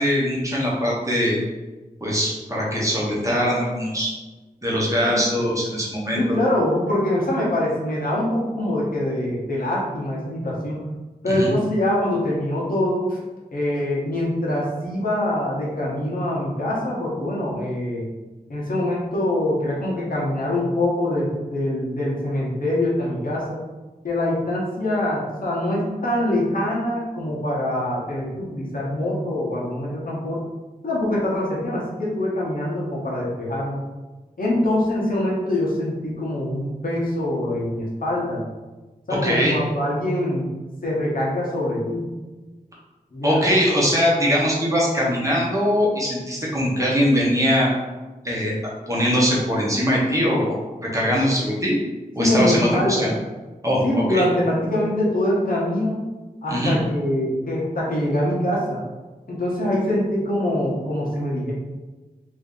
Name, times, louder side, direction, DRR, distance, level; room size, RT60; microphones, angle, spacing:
voice 1, 0.0-1.4 2.0-4.1 4.6-6.2 11.3-11.5 39.1-39.6 43.2-47.7 48.2-48.5 48.9-50.6 50.9-51.8 52.2-53.1 53.6-54.2 56.5-56.8, equal, 20° right, -5 dB, 0.9 m, -21 dB
voice 2, 6.1-10.9 11.2-13.2 13.5-18.1 18.5-23.6 24.0-30.5 30.8-33.8 34.4-38.4 39.1-40.5 40.8-42.1 43.1-43.5 52.2-53.1 53.8-56.0 56.4-58.8 59.3-61.5, left 1 dB, 65° left, -5 dB, 1.0 m, -24 dB
2.8 x 2.7 x 3.7 m, 1.2 s
wide cardioid pair, 90°, 16 cm